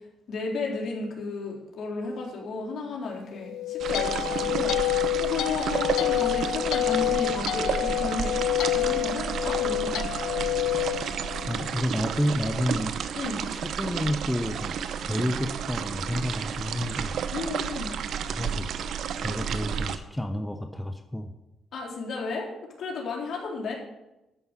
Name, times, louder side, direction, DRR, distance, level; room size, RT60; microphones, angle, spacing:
voice 1, 0.3-4.8 5.2-8.4 8.7-10.4 13.2-13.5 17.3-17.9 21.7-23.7, left 4 dB, 65° left, -1 dB, 3.8 m, -33 dB
sound 1, 3.4-11.8, left 15 dB, 80° left, 0.6 m, -28 dB
sound 2, 3.8-20.0, right 7 dB, 70° right, 0.8 m, -31 dB
voice 2, 11.5-13.0 13.5-14.8 15.0-17.2 18.3-21.3, equal, 5° left, 6 dB, 0.9 m, -30 dB
13.0 x 5.5 x 8.2 m, 0.95 s
cardioid pair, 90°, 0 cm